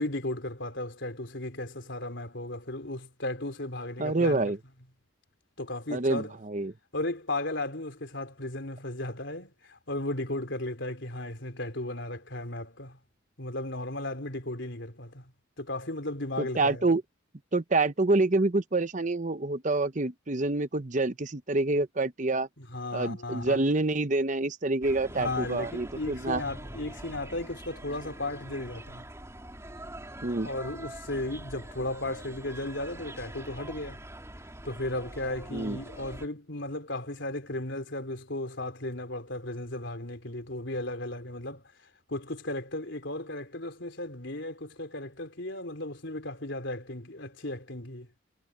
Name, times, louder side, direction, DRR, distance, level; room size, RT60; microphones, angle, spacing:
voice 1, 0.0-4.5 5.6-6.4 6.9-13.0 13.4-15.3 15.6-16.9 22.6-23.7 25.1-29.1 30.4-34.0 34.6-41.6 42.1-48.2, left 1 dB, 65° left, 4.1 m, -35 dB
voice 2, 4.0-4.6 5.9-6.7 16.4-17.0 17.5-22.5 22.9-26.4 30.2-30.5 35.5-35.8, right 2 dB, 40° right, 0.9 m, -27 dB
sound 1, 24.8-36.3, right 1 dB, 15° right, 3.5 m, -44 dB
head